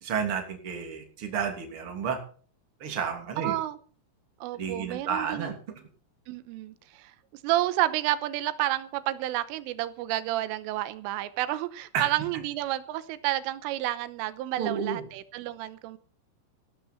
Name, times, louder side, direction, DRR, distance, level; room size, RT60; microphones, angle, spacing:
voice 1, 0.0-2.2 2.8-3.5 4.5-5.5 11.9-12.0 14.6-15.0, right 7 dB, 30° right, 4 dB, 3.1 m, -31 dB
voice 2, 3.4-3.8 4.4-5.5 6.3-7.2 7.4-16.0, right 15 dB, 90° right, 14 dB, 3.4 m, -30 dB
15.5 x 12.5 x 4.5 m, 0.43 s
omnidirectional pair, 5.7 m